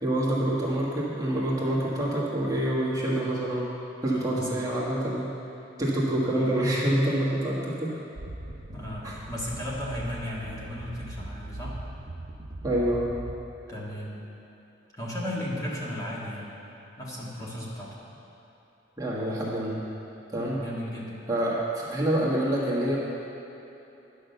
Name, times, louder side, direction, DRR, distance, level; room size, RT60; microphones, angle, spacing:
voice 1, 0.0-3.7 4.0-5.3 5.8-7.9 9.0-9.1 12.6-13.1 19.0-19.8 20.3-20.6 21.3-23.0, right 1 dB, 20° right, -6 dB, 1.4 m, -26 dB
sound 1, 8.2-13.3, right 1 dB, 65° right, 0.7 m, -40 dB
voice 2, 8.7-11.7 13.7-14.2 14.9-16.5 17.0-18.0 20.6-21.2, equal, 20° left, -6 dB, 1.7 m, -35 dB
10.0 x 6.3 x 6.7 m, 3.0 s
head